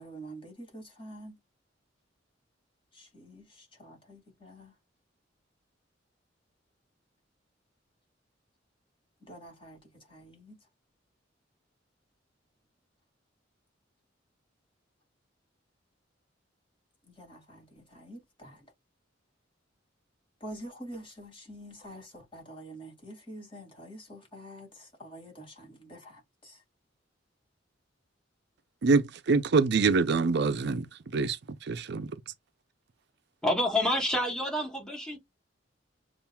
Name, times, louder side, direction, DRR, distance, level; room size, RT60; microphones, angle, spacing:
voice 1, 0.0-1.4 2.9-4.7 9.3-9.8 10.1-10.6 17.0-18.7 20.4-26.6, right 1 dB, 30° left, 2.1 m, -47 dB
voice 2, 28.8-30.9 31.1-32.1, right 4 dB, 60° right, 0.5 m, -25 dB
voice 3, 33.4-35.2, left 1 dB, 5° left, 1.3 m, -28 dB
7.0 x 2.5 x 2.3 m
head